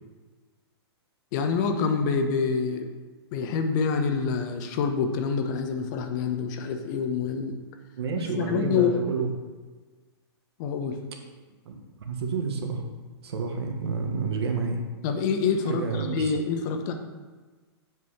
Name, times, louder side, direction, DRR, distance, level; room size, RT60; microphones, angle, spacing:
voice 1, 1.3-2.9 3.3-7.5 8.1-8.9 10.6-11.0 15.0-16.9, left 5 dB, 45° left, 6 dB, 1.0 m, -26 dB
voice 2, 8.0-9.3 11.0-11.1 11.6-12.8 13.2-14.8 15.7-16.3, right 5 dB, 70° right, 3 dB, 1.6 m, -29 dB
7.9 x 5.4 x 5.7 m, 1.3 s
hypercardioid pair, 130°, 14 cm